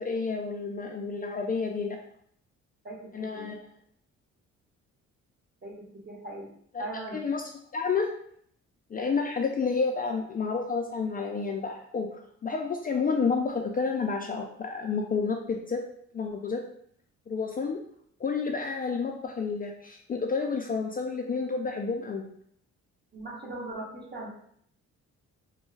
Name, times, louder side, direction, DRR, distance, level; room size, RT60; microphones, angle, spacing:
voice 1, 0.0-2.0 3.1-3.6 6.7-6.9 7.1-7.4 7.7-8.1 8.9-15.8 16.1-16.6 17.3-17.8 18.2-22.3, left 5 dB, 30° left, 1 dB, 0.4 m, -30 dB
voice 2, 2.8-3.5 5.6-6.5 6.8-7.2 23.1-24.3, right 2 dB, 35° right, -2 dB, 1.1 m, -39 dB
3.0 x 2.2 x 3.2 m, 0.65 s
cardioid pair, 90°, 30 cm